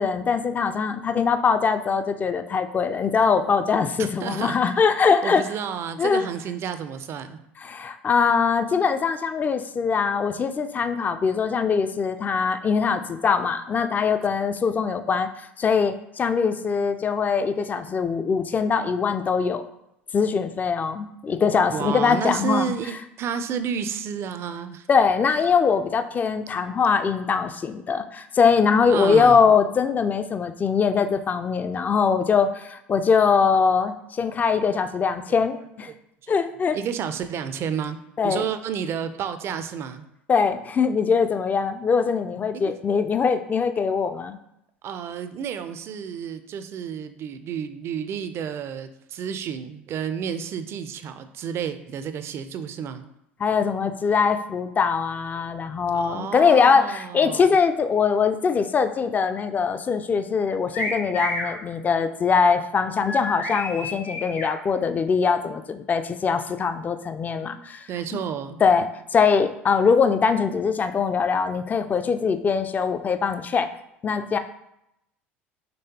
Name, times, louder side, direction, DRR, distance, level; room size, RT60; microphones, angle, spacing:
voice 1, 0.0-5.4 6.0-6.3 7.6-15.3 15.6-19.6 20.1-22.7 24.9-35.9 36.3-36.8 38.2-38.4 40.3-44.4 53.4-68.2 68.6-73.7 74.0-74.4, left 5 dB, 25° left, 9 dB, 0.4 m, -22 dB
voice 2, 4.0-4.7 5.2-7.4 21.7-24.9 28.9-29.5 34.2-34.4 34.7-34.9 35.5-35.6 36.2-36.4 36.7-40.1 42.7-42.8 44.8-53.1 55.9-57.5 67.9-68.6, right 7 dB, 45° right, 10 dB, 0.5 m, -31 dB
sound 1, 60.7-61.5 63.0-64.5, left 1 dB, 75° left, 1.7 m, -29 dB
5.3 x 3.2 x 2.9 m, 0.82 s
hypercardioid pair, 70°, 6 cm